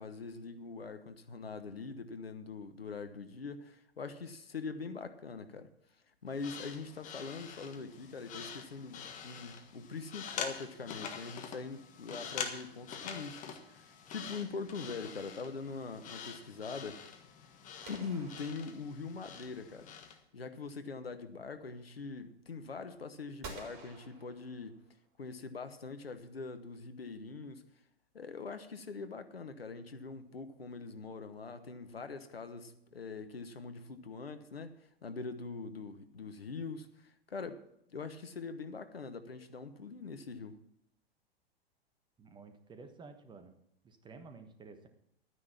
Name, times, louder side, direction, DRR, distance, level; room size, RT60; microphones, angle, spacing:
voice 1, 0.0-5.7 6.2-17.0 17.9-19.9 20.3-24.8 25.2-27.6 28.1-34.7 35.0-37.6 37.9-40.6, left 4 dB, 75° left, 10 dB, 1.2 m, -43 dB
sound 1, 6.3-20.2, left 7 dB, 25° left, 1.4 m, -45 dB
sound 2, 17.8-19.3 23.4-25.0, right 3 dB, 40° right, 3.9 m, -50 dB
voice 2, 42.2-43.6 43.8-44.9, right 4 dB, 15° right, 7 dB, 1.3 m, -52 dB
12.5 x 9.7 x 5.9 m, 0.73 s
figure-of-eight pair, 100°, 30 cm